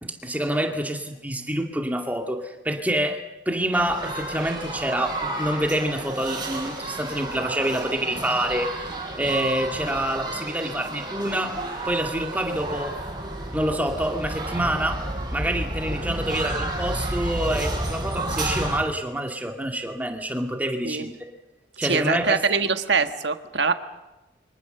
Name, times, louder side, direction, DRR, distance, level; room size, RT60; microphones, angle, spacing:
voice 1, 0.0-8.7 9.2-11.6 11.8-13.0 13.5-15.0 15.3-21.2 21.8-22.4, right 1 dB, 10° right, 3 dB, 2.3 m, -27 dB
sound 1, 3.7-18.8, right 1 dB, 25° right, 5.7 m, -31 dB
voice 2, 21.8-23.7, right 5 dB, 70° right, 8 dB, 1.5 m, -23 dB
28.0 x 24.0 x 6.8 m, 1.1 s
head